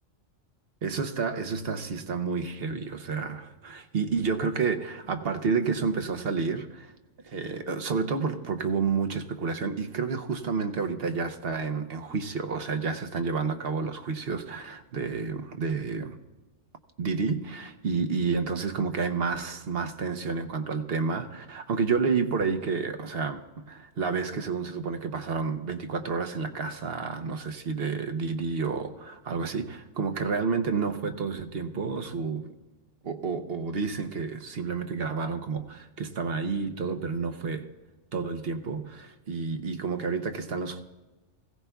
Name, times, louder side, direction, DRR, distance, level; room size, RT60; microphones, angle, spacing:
voice 1, 0.8-6.9 7.2-16.2 17.0-32.5 33.0-37.7 38.1-40.8, right 5 dB, 60° right, 1.0 m, -30 dB
20.5 x 16.0 x 2.3 m
omnidirectional pair, 1.2 m